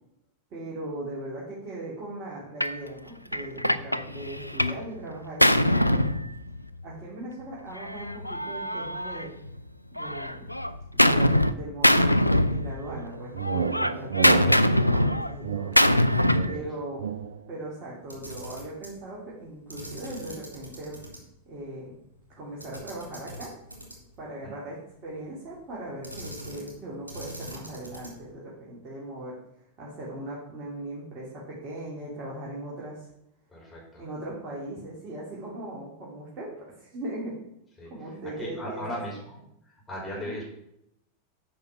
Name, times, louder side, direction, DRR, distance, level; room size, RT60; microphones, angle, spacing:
voice 1, 0.5-6.0 6.8-9.3 9.9-10.5 10.9-15.9 16.5-17.0 17.5-21.0 21.5-22.0 22.4-23.5 24.2-24.8 25.0-29.4 29.8-33.1 34.0-36.5 36.8-37.4 37.9-39.0 40.1-40.4, right 1 dB, 35° right, -5 dB, 2.7 m, -39 dB
Gunshot gunfire, 2.6-2.8 3.3-4.8 5.1-6.8 7.8-9.6 10.0-11.5 11.8-13.1 13.4-16.6, left 1 dB, 90° left, 0.4 m, -23 dB
sound 1, 12.9-17.5, right 6 dB, 65° right, 0.5 m, -31 dB
Camera, 18.0-19.0 19.7-21.2 21.5-21.6 22.6-24.2 26.0-26.8 27.1-28.3, equal, 85° right, 2.5 m, -42 dB
voice 2, 33.5-34.1 37.8-39.4 39.6-40.4, left 1 dB, 15° left, -4 dB, 4.1 m, -38 dB
8.6 x 5.4 x 5.8 m, 0.78 s
figure-of-eight pair, 90°, 0 cm